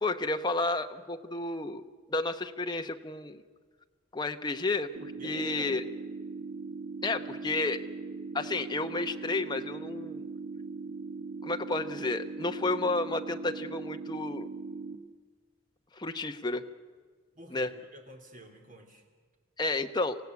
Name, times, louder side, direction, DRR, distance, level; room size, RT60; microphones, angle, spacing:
voice 1, 0.0-1.8 2.1-3.4 4.1-5.8 7.0-7.8 8.3-10.2 11.4-14.5 16.0-16.6 17.5-17.7 19.6-20.2, left 2 dB, 20° left, 6 dB, 0.9 m, -31 dB
sound 1, 4.9-15.0, right 4 dB, 65° right, 1.4 m, -40 dB
voice 2, 5.2-5.7 17.3-19.0, equal, 45° right, 3 dB, 3.1 m, -49 dB
25.0 x 16.0 x 9.6 m, 1.5 s
head